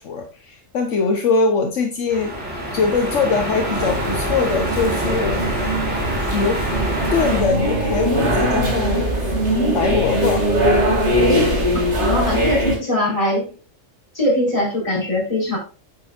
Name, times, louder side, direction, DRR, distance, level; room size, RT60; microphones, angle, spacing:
voice 1, 0.0-2.3 2.7-5.4 6.3-6.7 7.1-9.3 9.7-10.5, left 4 dB, 75° left, 3 dB, 1.4 m, -22 dB
sound 1, 2.1-7.4, right 1 dB, 5° right, 3.7 m, -26 dB
sound 2, 3.7-12.8, equal, 65° right, 2.9 m, -20 dB
voice 2, 12.0-13.5 14.1-15.6, left 1 dB, 25° left, -3 dB, 4.5 m, -21 dB
8.9 x 7.9 x 2.6 m, 0.34 s
omnidirectional pair, 1.3 m